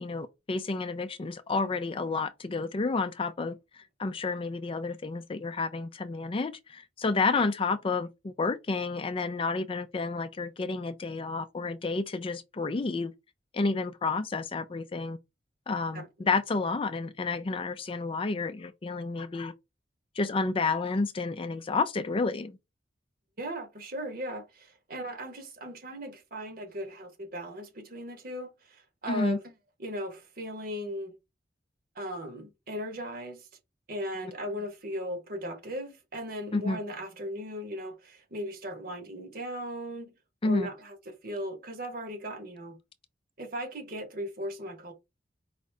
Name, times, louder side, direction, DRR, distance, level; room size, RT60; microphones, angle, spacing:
voice 1, 0.0-13.1 13.5-15.2 15.7-19.5 20.2-22.6 29.1-29.4 36.5-36.8 40.4-40.7, left 3 dB, 30° left, 0.4 m, -30 dB
voice 2, 15.9-16.3 23.4-29.4 29.8-31.1 31.9-33.5 33.9-40.1 40.4-42.8 43.4-44.9, equal, 55° right, 1.2 m, -37 dB
4.9 x 2.7 x 3.3 m
head